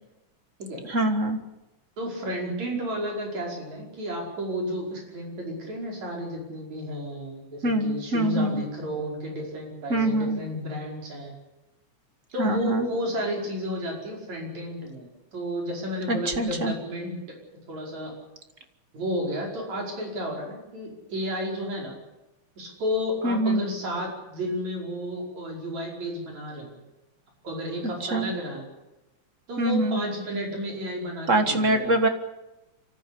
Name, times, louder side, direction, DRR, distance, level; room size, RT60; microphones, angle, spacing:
voice 1, 0.9-1.4 7.6-8.6 9.9-10.4 12.4-12.9 16.1-16.7 23.2-23.6 28.1-28.3 29.6-30.0 31.3-32.1, right 1 dB, 35° right, 7 dB, 1.3 m, -24 dB
voice 2, 2.0-11.3 12.3-17.2 17.7-18.1 18.9-22.0 22.6-26.8 27.4-28.6 29.5-32.1, equal, 65° right, -1 dB, 6.5 m, -32 dB
25.5 x 14.5 x 8.6 m, 1.0 s
omnidirectional pair, 3.5 m